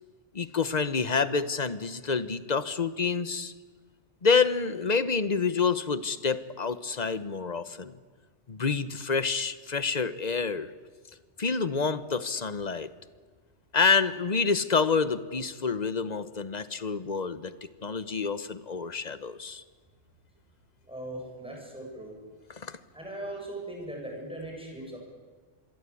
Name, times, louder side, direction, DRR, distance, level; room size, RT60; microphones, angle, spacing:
voice 1, 0.3-3.5 4.2-7.9 8.5-10.7 11.4-12.9 13.7-17.5 17.8-19.6 22.6-22.8, left 5 dB, 40° left, 13 dB, 1.1 m, -28 dB
voice 2, 20.9-22.2 22.9-25.0, right 1 dB, 5° right, -1 dB, 7.7 m, -39 dB
26.5 x 22.5 x 8.6 m, 1.5 s
omnidirectional pair, 1.2 m